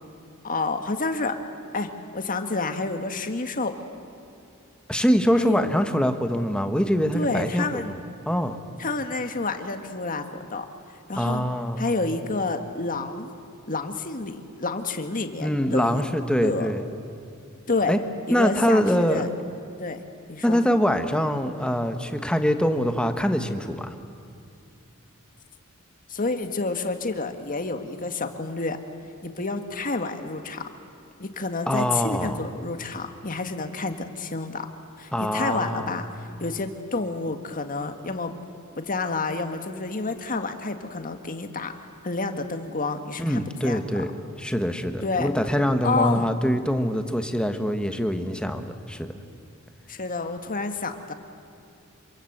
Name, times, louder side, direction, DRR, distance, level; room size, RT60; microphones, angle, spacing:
voice 1, 0.4-1.4 1.7-3.7 5.4-5.8 7.1-7.9 8.8-10.3 10.5-10.7 11.1-11.4 11.8-13.3 13.7-16.0 16.4-16.7 17.7-18.0 18.3-19.3 19.8-20.0 20.3-20.6 26.1-28.8 29.2-30.7 31.2-34.7 35.0-36.1 36.4-38.3 38.8-43.8 45.0-45.3 45.8-46.3 49.9-51.1, left 3 dB, 40° left, 7 dB, 1.8 m, -29 dB
voice 2, 4.9-8.0 8.3-8.6 11.1-11.8 15.4-16.8 17.9-18.0 18.3-19.3 20.4-23.9 31.7-32.4 35.1-36.0 43.2-44.1 44.4-49.1, equal, 5° left, 7 dB, 1.3 m, -24 dB
27.0 x 25.0 x 8.0 m, 2.5 s
head